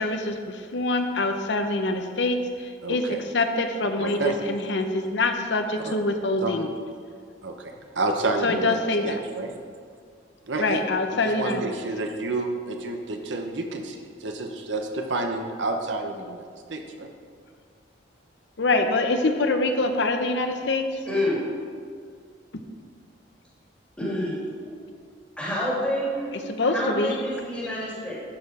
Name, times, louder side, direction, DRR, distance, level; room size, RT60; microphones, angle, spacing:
voice 1, 0.0-3.0 3.3-6.7 8.4-9.2 10.6-11.8 18.6-21.0 22.5-22.7 26.5-27.2, left 2 dB, 65° left, 6 dB, 0.8 m, -25 dB
voice 2, 2.8-3.2 4.0-4.3 5.8-6.0 6.4-6.5 7.4-9.5 10.5-10.8 11.1-17.1, right 2 dB, 75° right, 3 dB, 0.9 m, -30 dB
voice 3, 21.1-21.4 24.0-24.4 24.6-24.7 25.4-28.1, left 1 dB, 5° left, -8 dB, 2.5 m, -28 dB
11.5 x 4.7 x 4.9 m, 2.1 s
head